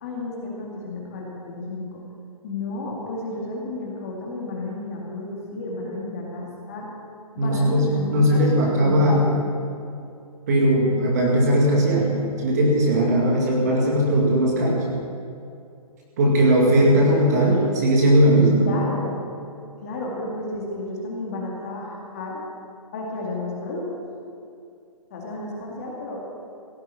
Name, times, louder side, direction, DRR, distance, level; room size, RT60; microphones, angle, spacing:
voice 1, 0.0-2.0 2.4-6.9 7.3-9.4 18.6-19.2 19.8-22.4 22.9-23.8 25.1-26.2, left 2 dB, 25° left, -3 dB, 2.2 m, -32 dB
voice 2, 7.4-9.4 10.5-14.8 16.2-18.6, right 1 dB, 25° right, -2 dB, 2.3 m, -19 dB
16.5 x 8.0 x 8.6 m, 2.5 s
hypercardioid pair, 180°, 19 cm